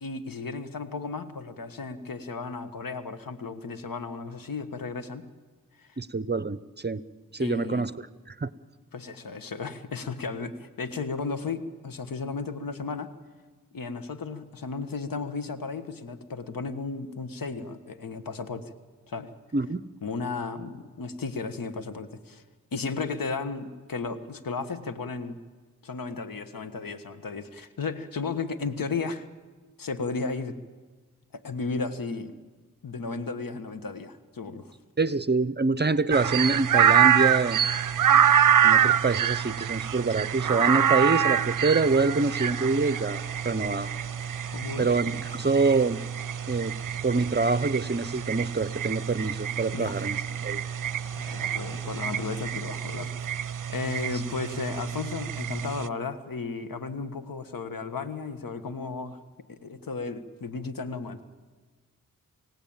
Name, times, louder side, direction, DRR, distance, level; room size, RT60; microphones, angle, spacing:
voice 1, 0.0-5.3 5.8-6.0 7.4-7.9 8.9-13.1 13.7-18.7 19.1-19.3 20.0-22.4 22.7-25.4 25.8-29.3 29.8-30.6 31.3-32.3 32.8-34.7 44.5-44.9 49.7-50.0 51.1-53.4 53.7-59.2 59.5-61.2, left 4 dB, 80° left, 10 dB, 1.5 m, -34 dB
voice 2, 6.0-7.0 7.3-7.9 8.3-8.5 19.5-19.8 35.0-37.6 38.1-38.2 38.6-43.9 44.8-46.0 46.5-46.7 47.0-50.6, right 3 dB, 30° right, 16 dB, 0.8 m, -26 dB
sound 1, 36.1-55.9, right 9 dB, 70° right, 0.6 m, -26 dB
sound 2, 39.4-52.5, equal, 15° left, 3.7 m, -50 dB
28.5 x 17.0 x 8.9 m, 1.4 s
cardioid pair, 60°, 34 cm